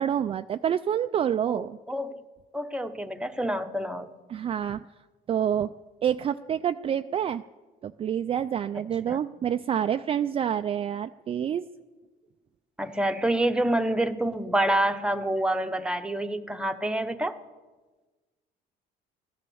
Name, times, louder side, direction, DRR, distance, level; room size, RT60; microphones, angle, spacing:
voice 1, 0.0-1.8 4.3-4.8 5.3-5.7 6.0-7.4 7.8-11.7, right 9 dB, 35° right, 9 dB, 0.3 m, -27 dB
voice 2, 1.5-2.2 2.5-4.1 9.1-9.2 12.8-17.4, right 1 dB, 5° right, 6 dB, 0.9 m, -27 dB
14.5 x 11.0 x 7.0 m, 1.3 s
cardioid pair, 110°, 17 cm